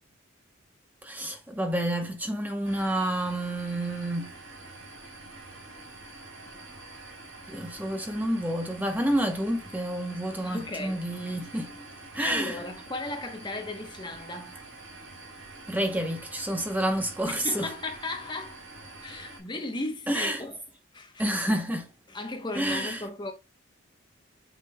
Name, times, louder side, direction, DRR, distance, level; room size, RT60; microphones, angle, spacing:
voice 1, 1.0-4.3 7.5-11.8 12.1-12.6 15.7-17.7 20.1-20.4 21.2-21.9 22.5-23.1, right 1 dB, 10° right, 0.8 m, -29 dB
sound 1, 2.6-19.4, right 2 dB, 75° right, 4.4 m, -46 dB
voice 2, 10.4-11.1 12.2-14.6 17.3-18.6 19.0-20.6 20.9-21.3 22.1-23.3, left 2 dB, 20° left, 0.9 m, -36 dB
8.5 x 5.2 x 2.2 m
head